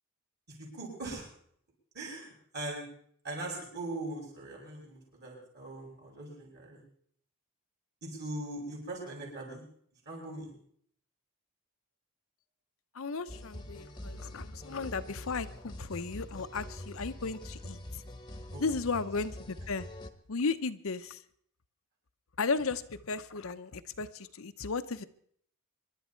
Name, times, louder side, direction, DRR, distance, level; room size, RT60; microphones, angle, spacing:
voice 1, 0.5-1.3 1.9-2.9 3.2-6.8 8.0-9.6 10.0-10.5 18.5-18.7, right 2 dB, 50° right, -1 dB, 7.5 m, -41 dB
voice 2, 12.9-18.0 18.6-19.8 20.3-21.2 22.4-25.0, left 4 dB, 65° left, 10 dB, 0.7 m, -35 dB
sound 1, 13.3-20.1, left 1 dB, 20° left, 1.1 m, -44 dB
26.0 x 11.5 x 4.5 m, 0.63 s
head